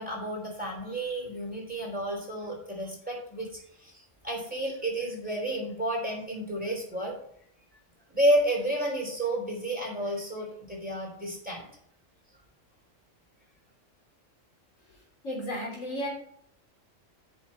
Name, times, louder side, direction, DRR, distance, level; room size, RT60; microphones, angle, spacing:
voice 1, 0.0-7.2 8.1-11.7, right 1 dB, 5° right, -3 dB, 3.2 m, -31 dB
voice 2, 15.2-16.1, equal, 85° left, -2 dB, 3.4 m, -33 dB
12.5 x 5.7 x 4.3 m, 0.71 s
omnidirectional pair, 1.3 m